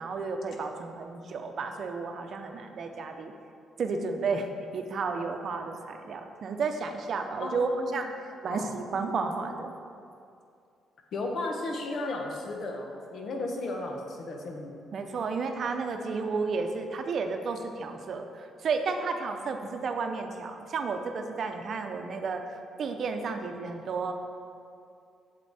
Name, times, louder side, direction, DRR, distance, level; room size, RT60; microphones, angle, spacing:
voice 1, 0.0-3.3 3.8-8.1 8.4-9.7 14.9-22.4 22.8-24.1, right 4 dB, 55° right, 5 dB, 0.7 m, -32 dB
voice 2, 7.4-8.0 8.5-8.7 11.1-14.8, left 2 dB, 60° left, 2 dB, 1.2 m, -34 dB
8.2 x 6.8 x 4.2 m, 2.4 s
cardioid pair, 90°, 0 cm